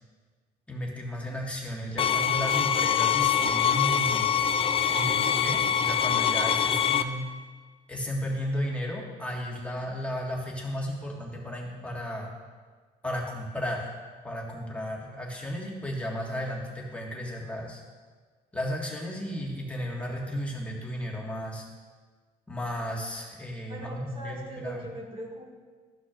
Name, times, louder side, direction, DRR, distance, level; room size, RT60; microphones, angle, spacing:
voice 1, 0.7-4.3 4.8-7.2 7.9-12.3 13.0-13.9 14.2-17.8 18.5-21.6 22.5-24.8, equal, 5° left, -3 dB, 1.7 m, -34 dB
sound 1, 2.0-7.0, left 8 dB, 35° left, 0.4 m, -24 dB
voice 2, 23.7-25.5, right 1 dB, 35° right, -3 dB, 2.1 m, -40 dB
13.0 x 5.9 x 2.5 m, 1.5 s
cardioid pair, 110°, 17 cm